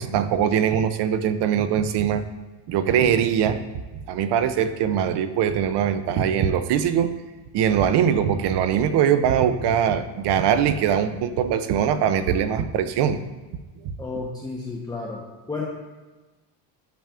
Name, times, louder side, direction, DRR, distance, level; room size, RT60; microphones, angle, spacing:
voice 1, 0.0-2.2 2.7-3.6 3.9-7.1 7.5-13.2 13.8-13.9, right 8 dB, 60° right, 11 dB, 0.7 m, -22 dB
voice 2, 14.0-15.2 15.5-15.6, left 3 dB, 10° left, -4 dB, 0.9 m, -31 dB
10.0 x 5.7 x 2.5 m, 1.2 s
cardioid pair, 110°, 47 cm